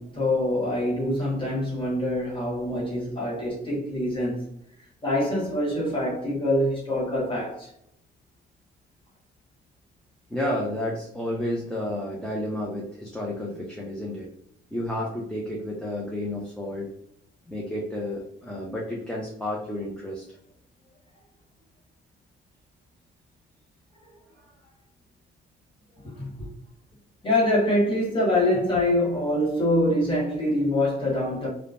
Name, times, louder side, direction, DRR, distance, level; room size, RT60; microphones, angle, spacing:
voice 1, 0.0-4.5 5.0-7.7 26.2-26.5 27.2-31.5, left 1 dB, 25° left, 1.4 m, -25 dB
voice 2, 10.3-14.3 14.7-16.9 17.5-20.2, left 1 dB, 5° left, 0.5 m, -31 dB
2.8 x 2.1 x 2.5 m
cardioid pair, 90°, 20 cm